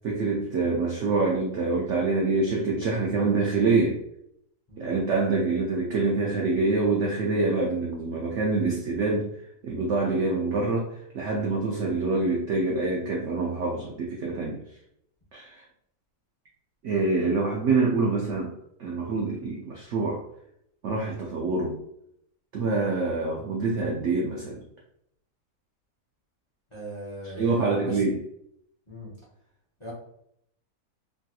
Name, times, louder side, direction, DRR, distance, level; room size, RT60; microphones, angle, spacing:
voice 1, 0.0-4.0 4.8-9.3 9.6-14.6 15.3-15.6 16.8-18.5 18.8-20.2 20.8-21.8 22.5-24.6 27.2-28.2, right 3 dB, 80° right, -2 dB, 0.6 m, -26 dB
voice 2, 26.7-28.0 28.9-29.1 29.8-29.9, equal, 30° left, -6 dB, 0.5 m, -39 dB
3.3 x 2.7 x 2.3 m, 0.73 s
omnidirectional pair, 1.8 m